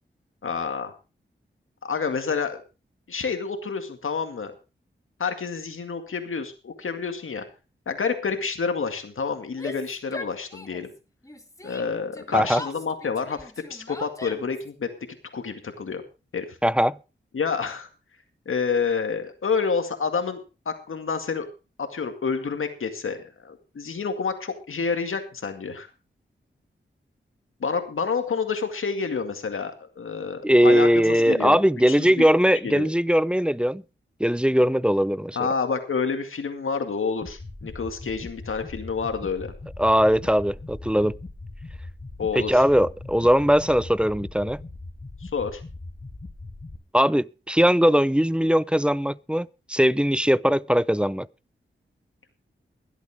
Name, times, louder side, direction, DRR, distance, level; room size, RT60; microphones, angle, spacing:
voice 1, 0.4-0.9 1.8-2.6 3.1-4.5 5.2-7.4 7.9-10.9 11.6-14.9 15.3-16.0 16.3-16.6 17.3-17.9 18.5-21.5 21.8-25.9 27.6-31.6 31.9-32.3 32.6-32.9 35.4-39.5 42.2-42.6 45.2-45.6, left 5 dB, 75° left, 2.1 m, -28 dB
Yell, 9.5-11.0 11.2-14.7, left 1 dB, 15° left, 2.1 m, -39 dB
voice 2, 16.6-17.0 30.4-33.8 34.2-35.5 39.8-41.2 42.3-44.6 46.9-51.3, equal, 5° right, 0.5 m, -20 dB
sound 1, 37.2-46.8, left 2 dB, 35° left, 2.3 m, -40 dB
23.0 x 8.2 x 3.5 m
cardioid pair, 40°, 21 cm